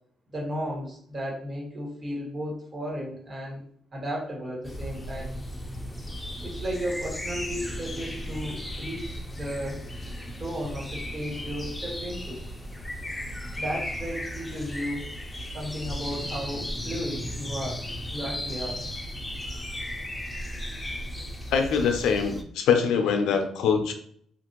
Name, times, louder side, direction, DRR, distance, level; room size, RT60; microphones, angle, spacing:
voice 1, 0.3-3.6 3.9-5.3 6.4-9.8 10.4-12.4 13.6-15.1 15.5-17.8 18.1-18.9, equal, 40° right, -3 dB, 1.4 m, -34 dB
sound 1, 4.6-22.4, equal, 15° left, 0.5 m, -36 dB
voice 2, 21.5-23.9, left 6 dB, 85° left, 5 dB, 0.5 m, -23 dB
2.8 x 2.5 x 2.9 m, 0.63 s
cardioid pair, 90°, 0 cm